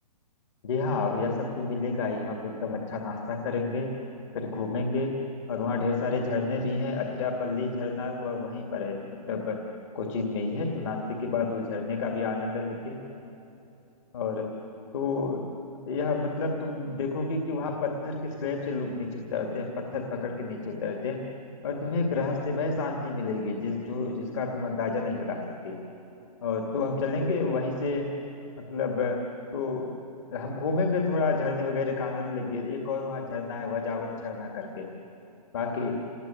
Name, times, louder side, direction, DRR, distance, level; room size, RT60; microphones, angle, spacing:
voice 1, 0.6-3.9 4.3-5.2 5.5-9.0 9.3-9.6 9.9-13.0 14.1-14.5 14.9-15.4 15.9-21.2 21.6-25.8 26.4-28.1 28.7-29.2 29.5-29.9 30.3-34.9 35.5-36.0, left 4 dB, 50° left, 1 dB, 2.5 m, -30 dB
27.0 x 20.0 x 9.1 m, 2.8 s
hypercardioid pair, 165°, 20 cm